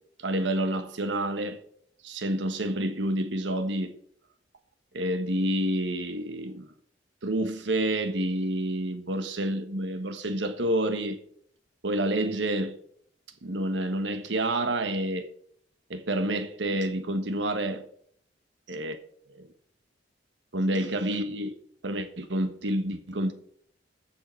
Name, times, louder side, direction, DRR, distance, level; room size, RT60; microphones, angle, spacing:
voice 1, 0.2-1.6 2.0-3.9 4.9-6.7 7.2-11.2 11.8-12.8 13.4-15.3 15.9-17.8 18.7-19.0 19.3-19.5 20.5-21.5 21.8-23.3, right 1 dB, 85° right, 1.3 m, -28 dB
14.5 x 5.6 x 4.5 m
head